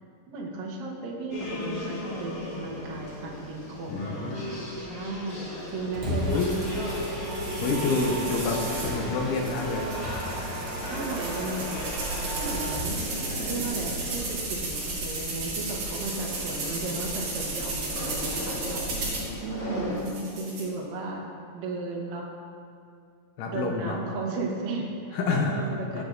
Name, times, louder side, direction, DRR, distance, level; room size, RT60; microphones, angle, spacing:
voice 1, 0.3-7.0 8.0-8.2 10.9-11.9 12.4-13.0 13.4-19.1 19.4-21.3 21.5-22.3 23.5-26.0, right 3 dB, 75° right, -1 dB, 2.6 m, -35 dB
sound 1, 1.3-20.0, left 1 dB, 60° left, 0.8 m, -37 dB
voice 2, 3.9-4.5 6.1-6.6 7.6-9.9 18.9-19.3 23.4-24.0 25.1-26.0, left 4 dB, 80° left, 1 dB, 2.1 m, -29 dB
Mechanisms, 5.7-13.0, right 1 dB, 45° right, 2.1 m, -35 dB
sound 2, 6.3-9.0 9.3-19.3 20.0-20.6, right 3 dB, 60° right, 2.6 m, -34 dB
15.0 x 5.2 x 2.5 m, 2.3 s
omnidirectional pair, 4.1 m